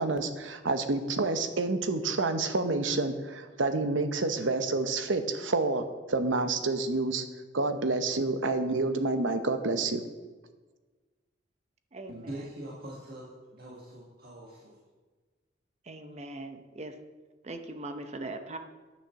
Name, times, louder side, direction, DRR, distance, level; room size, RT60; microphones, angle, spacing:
voice 1, 0.0-7.2 7.5-10.0, right 3 dB, 90° right, 8 dB, 1.0 m, -28 dB
voice 2, 12.1-14.8, right 1 dB, 55° right, -3 dB, 1.6 m, -43 dB
voice 3, 15.9-16.9 17.4-18.6, right 2 dB, 35° right, 7 dB, 0.8 m, -40 dB
10.0 x 6.3 x 7.0 m, 1.3 s
head